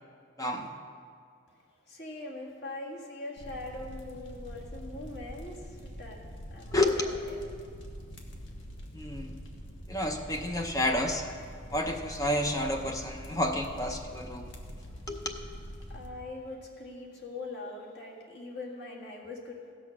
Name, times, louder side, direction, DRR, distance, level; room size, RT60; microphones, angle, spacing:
voice 1, 0.4-0.7 6.7-7.1 8.9-9.3 9.9-11.3 11.7-14.5 15.1-15.4, left 1 dB, 20° left, 3 dB, 0.6 m, -30 dB
voice 2, 1.5-7.4 15.9-19.6, left 2 dB, 60° left, -2 dB, 2.0 m, -42 dB
sound 1, 3.4-16.1, equal, 80° left, 1.3 m, -44 dB
16.0 x 6.2 x 6.0 m, 2.3 s
head